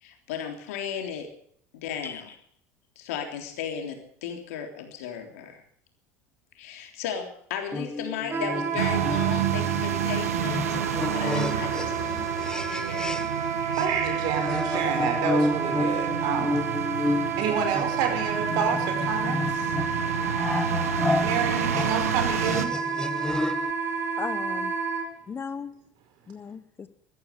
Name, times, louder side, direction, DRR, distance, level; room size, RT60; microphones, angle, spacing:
voice 1, 0.0-1.3 1.7-2.3 3.0-5.6 6.6-10.8 11.1-13.1, left 8 dB, 75° left, 5 dB, 3.5 m, -35 dB
voice 2, 2.0-2.3 13.6-13.8 24.2-24.7 25.3-25.7 26.3-26.9, left 6 dB, 30° left, 14 dB, 1.1 m, -37 dB
sound 1, 7.7-13.5 13.7-23.7, left 2 dB, 10° left, 0.8 m, -31 dB
Wind instrument woodwind instrument, 8.3-25.1, right 6 dB, 30° right, 4.3 m, -30 dB
sound 2, 8.8-22.6, right 9 dB, 85° right, 1.2 m, -31 dB
voice 3, 13.7-16.5 17.4-19.7 21.2-22.7, right 6 dB, 65° right, 5 dB, 5.0 m, -29 dB
14.5 x 14.0 x 6.7 m, 0.63 s
hypercardioid pair, 75°, 8 cm